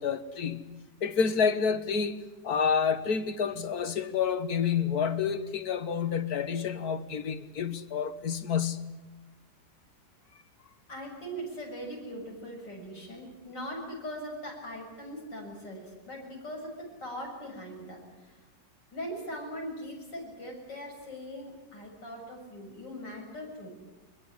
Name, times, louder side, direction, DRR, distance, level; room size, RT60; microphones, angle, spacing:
voice 1, 0.0-2.2 2.4-8.9, left 6 dB, 60° left, 1.8 m, -29 dB
voice 2, 10.9-18.4 18.9-23.7, equal, 90° left, 7.8 m, -40 dB
22.5 x 21.5 x 9.7 m
omnidirectional pair, 1.9 m